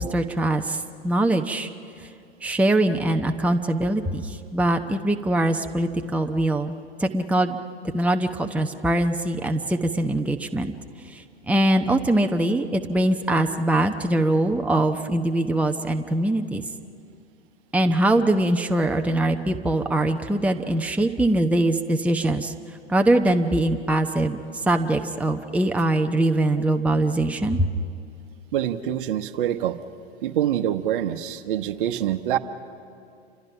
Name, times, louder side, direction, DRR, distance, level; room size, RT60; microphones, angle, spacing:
voice 1, 0.0-1.7 2.0-2.1 2.4-6.7 7.0-7.6 7.9-10.7 11.1-16.6 17.7-22.5 22.9-24.4 24.7-27.7, right 1 dB, 5° right, 5 dB, 0.9 m, -22 dB
voice 2, 28.5-29.8 30.2-32.4, right 11 dB, 55° right, 10 dB, 1.2 m, -25 dB
29.0 x 26.0 x 5.9 m, 2.4 s
figure-of-eight pair, 95°, 32 cm